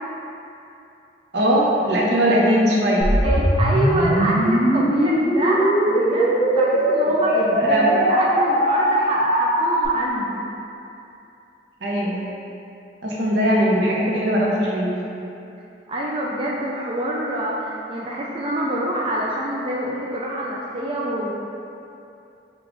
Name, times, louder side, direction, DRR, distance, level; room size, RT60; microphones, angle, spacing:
voice 1, 1.3-3.1 7.3-7.9 11.8-12.2 13.0-14.9, equal, 75° right, -4 dB, 0.7 m, -20 dB
sound 1, 3.0-9.8, right 1 dB, 20° left, 0.8 m, -20 dB
voice 2, 3.2-10.4 15.9-21.3, right 1 dB, 30° right, -4 dB, 0.3 m, -26 dB
4.5 x 2.3 x 4.0 m, 2.8 s
head